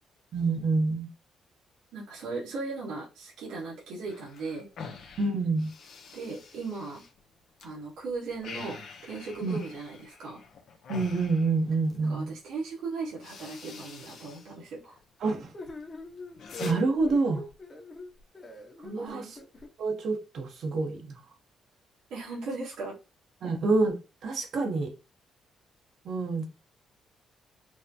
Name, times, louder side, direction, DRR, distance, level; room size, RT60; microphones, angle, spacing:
voice 1, 0.3-1.1 5.2-5.7 9.4-9.6 10.9-12.3 15.2-15.5 16.6-17.5 18.8-19.3 19.8-21.2 23.4-24.0 24.2-24.9 26.0-26.4, right 3 dB, 65° right, 1.0 m, -27 dB
voice 2, 1.9-4.7 6.1-7.0 7.6-10.4 12.0-15.0 18.9-19.3 22.1-23.0, right 3 dB, 85° right, 1.7 m, -37 dB
sound 1, 4.1-7.7 8.0-12.1 12.7-12.8 13.1-14.5 14.8-15.4 15.8-16.7, left 5 dB, 70° left, 0.8 m, -46 dB
sound 2, 15.5-19.7, left 2 dB, 30° left, 1.1 m, -42 dB
4.6 x 2.2 x 2.8 m
cardioid pair, 90°, 0 cm